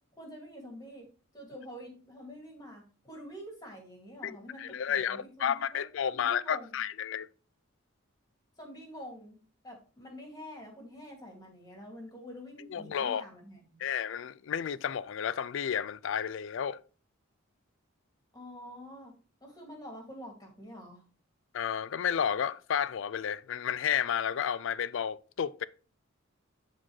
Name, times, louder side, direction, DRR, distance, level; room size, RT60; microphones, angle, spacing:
voice 1, 0.2-1.1 1.3-5.8 6.1-6.8 8.6-9.4 9.6-13.9 18.3-21.0, equal, 20° left, 2.3 m, -47 dB
voice 2, 4.2-7.3 12.6-13.2 13.8-16.8 21.5-25.7, left 8 dB, 65° left, 0.4 m, -32 dB
11.5 x 4.1 x 3.2 m
head